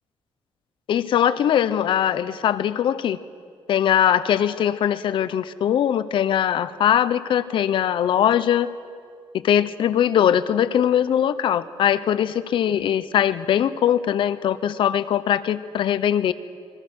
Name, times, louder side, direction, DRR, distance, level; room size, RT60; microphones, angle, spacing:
voice 1, 0.9-3.2 3.7-8.7 9.3-16.3, left 10 dB, 55° left, 14 dB, 0.9 m, -21 dB
27.5 x 22.0 x 6.3 m, 2.2 s
cardioid pair, 180°, 10 cm